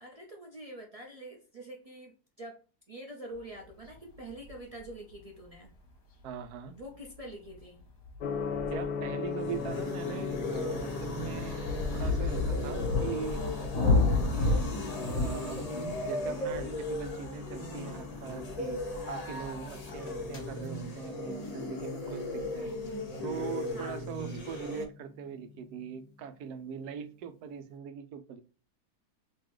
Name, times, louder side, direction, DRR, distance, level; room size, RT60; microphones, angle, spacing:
voice 1, 0.0-2.6 2.9-5.7 6.7-7.8 23.7-24.0, right 1 dB, 40° right, 0.5 m, -45 dB
sound 1, 3.9-4.0 4.3-4.9 6.8-6.9 7.3-7.4 7.5-7.6 7.8-9.1 9.5-19.6 19.8-20.4, left 3 dB, 60° left, 1.5 m, -32 dB
voice 2, 6.2-6.8 8.7-13.4 13.7-14.7 15.1-15.6 16.0-22.7 23.2-28.4, right 7 dB, 75° right, 1.1 m, -41 dB
Gong, 8.2-26.1, left 6 dB, 75° left, 1.2 m, -41 dB
sound 2, 9.2-24.9, left 1 dB, 30° left, 0.8 m, -37 dB
3.8 x 3.0 x 3.0 m
omnidirectional pair, 1.7 m